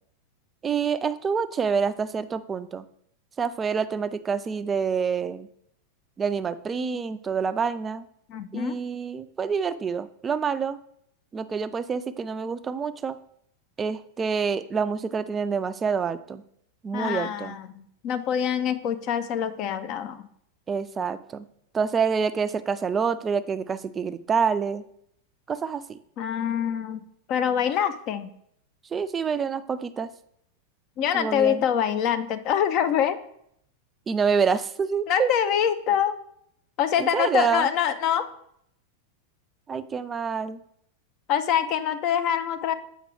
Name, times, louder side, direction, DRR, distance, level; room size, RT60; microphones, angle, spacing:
voice 1, 0.6-2.8 3.4-5.5 6.2-8.1 8.5-10.8 11.3-13.2 13.8-16.4 16.8-17.6 20.7-21.5 21.7-24.8 25.5-26.0 28.9-30.1 31.1-31.6 34.1-35.3 37.0-37.7 39.7-40.6, right 6 dB, 20° right, 13 dB, 0.4 m, -27 dB
voice 2, 8.3-8.8 16.9-20.3 26.2-27.0 27.3-28.3 31.0-33.2 35.1-36.2 36.8-38.3 41.3-42.7, left 9 dB, 40° left, 11 dB, 0.5 m, -25 dB
7.3 x 4.9 x 3.3 m, 0.69 s
figure-of-eight pair, 90°, 0 cm